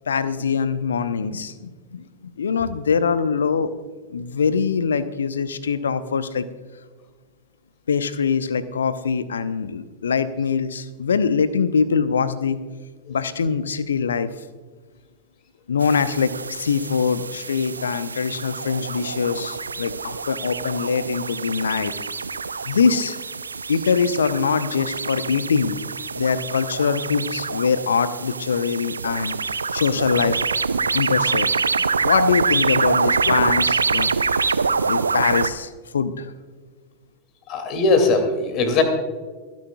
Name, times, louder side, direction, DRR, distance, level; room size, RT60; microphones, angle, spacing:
voice 1, 0.1-2.0 2.4-3.7 4.1-6.4 7.9-12.6 13.1-14.3 15.7-21.9 22.7-23.2 23.7-25.8 26.1-30.4 30.9-31.5 32.0-34.6 34.8-36.3, left 6 dB, 70° left, 14 dB, 0.7 m, -23 dB
sound 1, 15.8-35.5, right 4 dB, 75° right, 0.5 m, -25 dB
voice 2, 37.5-38.8, left 3 dB, 35° left, 6 dB, 2.5 m, -19 dB
29.0 x 10.5 x 2.3 m, 1.4 s
figure-of-eight pair, 90°, 0 cm